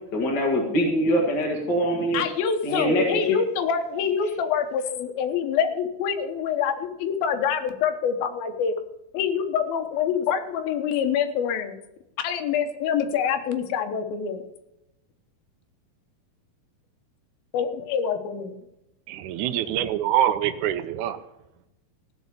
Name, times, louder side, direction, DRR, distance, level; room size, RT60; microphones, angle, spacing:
voice 1, 0.1-2.2 2.6-3.4, equal, 40° left, -1 dB, 1.8 m, -23 dB
voice 2, 2.1-8.8 9.1-11.8 12.2-14.4 17.5-18.6, left 7 dB, 75° left, 7 dB, 2.8 m, -26 dB
voice 3, 19.1-21.2, right 11 dB, 80° right, 10 dB, 1.8 m, -25 dB
16.0 x 5.3 x 9.6 m, 0.89 s
omnidirectional pair, 4.4 m